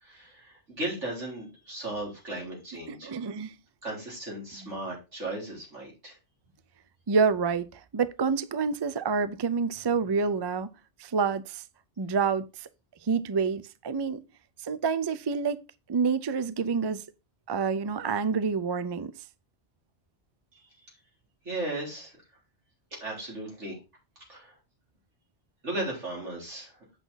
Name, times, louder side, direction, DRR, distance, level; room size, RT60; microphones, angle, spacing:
voice 1, 0.0-3.1 3.8-6.2 20.5-20.9 21.4-22.2 23.0-23.8 24.3-24.5 25.6-26.7, right 2 dB, 85° right, 4.2 m, -36 dB
voice 2, 2.9-3.5 7.1-7.7 7.9-10.7 11.0-11.6 12.0-12.5 13.1-14.2 14.7-15.6 15.9-17.0 17.5-19.1, right 5 dB, 40° right, 0.3 m, -27 dB
8.3 x 5.8 x 3.9 m
omnidirectional pair, 1.2 m